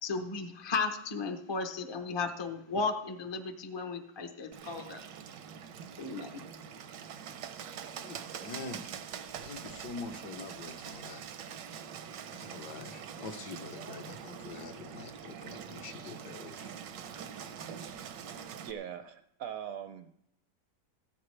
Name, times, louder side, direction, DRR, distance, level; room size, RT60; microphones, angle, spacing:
voice 1, 0.0-5.0 6.0-6.4, left 4 dB, 35° left, 5 dB, 0.4 m, -35 dB
Bird, 4.5-18.7, right 8 dB, 85° right, 1.4 m, -44 dB
voice 2, 8.0-8.9 9.4-11.2 12.3-16.7, left 4 dB, 70° left, 5 dB, 1.6 m, -45 dB
voice 3, 18.6-20.1, right 9 dB, 70° right, 9 dB, 0.8 m, -41 dB
15.5 x 13.5 x 3.2 m, 0.79 s
omnidirectional pair, 1.9 m